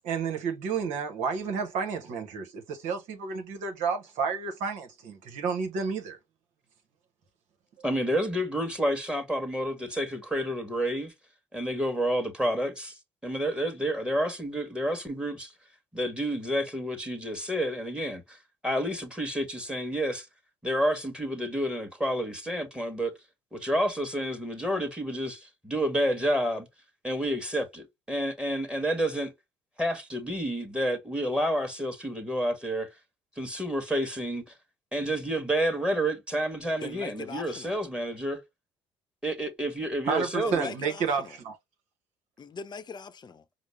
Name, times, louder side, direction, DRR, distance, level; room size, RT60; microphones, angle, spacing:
voice 1, 0.0-6.2 40.0-41.5, right 5 dB, 70° right, 0.9 m, -31 dB
voice 2, 7.8-11.1 11.5-12.7 13.2-15.5 15.9-18.4 18.6-20.3 20.6-23.1 23.5-26.7 27.0-29.3 29.8-32.9 33.4-34.4 34.9-38.4 39.2-40.7, equal, 5° right, 1.3 m, -29 dB
voice 3, 36.8-37.8 40.4-41.4 42.4-43.4, left 5 dB, 35° left, 0.7 m, -41 dB
5.0 x 2.0 x 3.2 m
hypercardioid pair, 65°, 13 cm